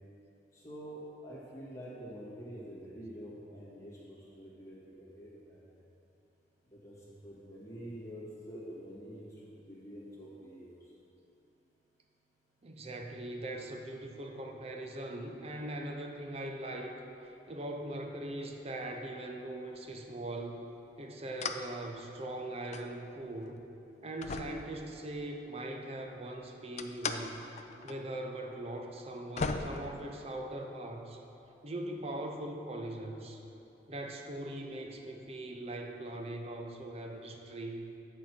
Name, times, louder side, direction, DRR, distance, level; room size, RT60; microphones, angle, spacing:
voice 1, 0.5-5.8 6.7-6.9 7.2-10.8, equal, 20° left, -8 dB, 1.8 m, -47 dB
voice 2, 12.6-17.0 17.5-20.7 21.0-23.6 24.0-27.4 27.8-31.2 31.6-33.4 33.9-37.9, right 1 dB, 35° right, 3 dB, 0.7 m, -41 dB
sound 1, 21.4-21.7 22.0-22.9 23.5-23.6 24.2-25.3 26.8-27.2 27.6-28.0 28.2-28.3 29.0-29.1 29.4-30.6, left 4 dB, 40° left, 0.4 m, -38 dB
9.8 x 4.6 x 5.8 m, 2.9 s
head